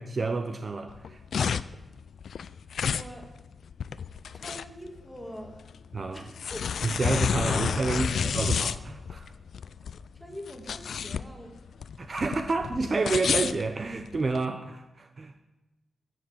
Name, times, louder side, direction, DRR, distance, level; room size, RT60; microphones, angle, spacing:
voice 1, 0.0-1.4 5.9-6.2 6.8-9.3 12.0-15.3, right 3 dB, 35° right, 7 dB, 0.8 m, -29 dB
sound 1, 0.9-14.4, left 7 dB, 70° left, 0.5 m, -30 dB
voice 2, 2.9-3.3 4.3-5.6 6.1-6.6 7.5-8.3 10.1-11.5, equal, 5° left, 2 dB, 2.1 m, -43 dB
14.0 x 7.8 x 8.7 m, 1.0 s
wide cardioid pair, 160°, 0 cm